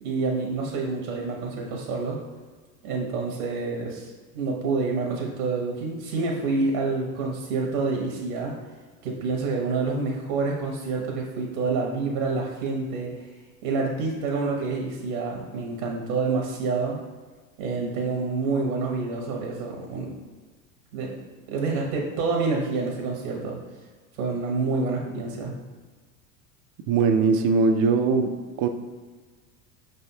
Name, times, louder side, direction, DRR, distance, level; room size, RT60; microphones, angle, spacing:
voice 1, 0.0-2.2 2.8-8.6 9.0-13.1 13.6-17.0 17.6-20.1 20.9-21.1 21.5-23.6 24.2-25.6, right 4 dB, 70° right, -1 dB, 1.1 m, -27 dB
voice 2, 26.9-28.7, right 4 dB, 45° right, 6 dB, 0.6 m, -21 dB
5.1 x 3.4 x 2.8 m, 1.4 s
hypercardioid pair, 100°, 43 cm